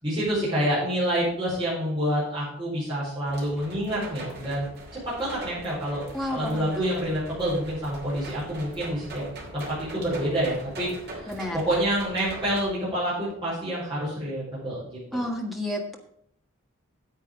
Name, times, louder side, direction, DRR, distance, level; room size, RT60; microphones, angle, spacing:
voice 1, 0.0-4.7 5.2-9.2 9.5-15.3, equal, 25° right, -9 dB, 4.8 m, -28 dB
sound 1, 3.3-12.7, right 1 dB, 50° right, 2.7 m, -41 dB
voice 2, 6.1-6.8 11.3-11.6 15.1-16.0, left 1 dB, ahead, 0 dB, 1.5 m, -31 dB
9.7 x 8.1 x 5.1 m, 0.69 s
head